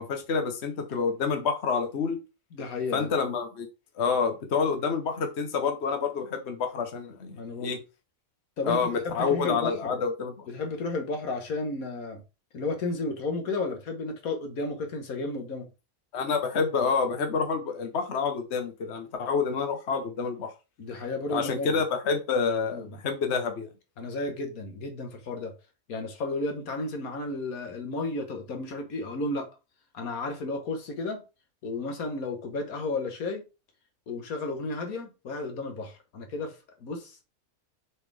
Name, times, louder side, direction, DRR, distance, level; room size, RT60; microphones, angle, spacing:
voice 1, 0.0-2.2 2.9-3.7 4.0-7.8 8.6-10.5 16.1-20.5 21.3-23.7, left 5 dB, 50° left, 1.3 m, -28 dB
voice 2, 2.5-3.1 7.3-7.7 8.6-10.0 10.5-12.2 12.5-15.7 20.8-21.7 22.7-23.0 24.0-25.5 25.9-29.5 29.9-31.2 31.6-33.4 34.1-37.2, left 3 dB, 75° left, 1.6 m, -33 dB
6.9 x 4.1 x 3.3 m
omnidirectional pair, 1.5 m